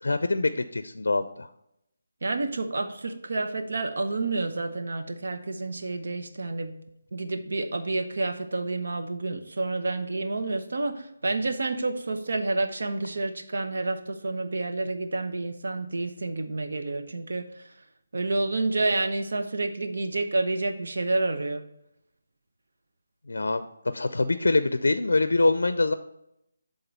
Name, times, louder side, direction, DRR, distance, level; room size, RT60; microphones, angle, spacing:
voice 1, 0.0-1.5 23.3-25.9, left 2 dB, 90° left, 11 dB, 0.4 m, -24 dB
voice 2, 2.2-6.8 7.1-17.6 18.1-21.7, right 2 dB, 70° right, 6 dB, 0.9 m, -29 dB
10.0 x 3.8 x 4.1 m, 0.80 s
hypercardioid pair, 170°, 0 cm